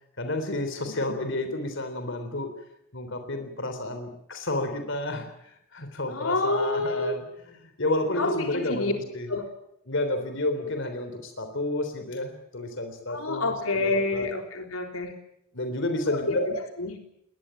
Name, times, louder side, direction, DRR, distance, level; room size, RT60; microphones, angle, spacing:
voice 1, 0.2-2.5 2.9-7.2 7.6-9.3 9.9-13.5 13.8-14.3 15.5-16.5, left 2 dB, 60° left, 7 dB, 3.6 m, -30 dB
voice 2, 0.9-1.2 6.1-7.1 8.2-8.9 9.3-9.5 13.1-15.2 16.1-17.1, left 2 dB, 80° left, 4 dB, 3.7 m, -28 dB
20.5 x 20.5 x 9.1 m, 0.77 s
head